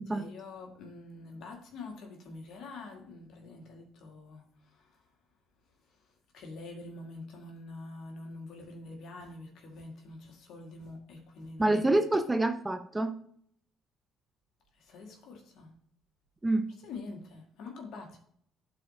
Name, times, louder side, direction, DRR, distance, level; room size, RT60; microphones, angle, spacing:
voice 1, 0.1-5.0 5.9-6.1 6.3-12.0 14.7-15.8 16.8-18.2, left 3 dB, 65° left, 2 dB, 1.9 m, -46 dB
voice 2, 11.6-13.2 16.4-16.7, right 2 dB, 15° right, 7 dB, 0.9 m, -27 dB
12.0 x 4.3 x 2.8 m, 0.63 s
hypercardioid pair, 55°, 0 cm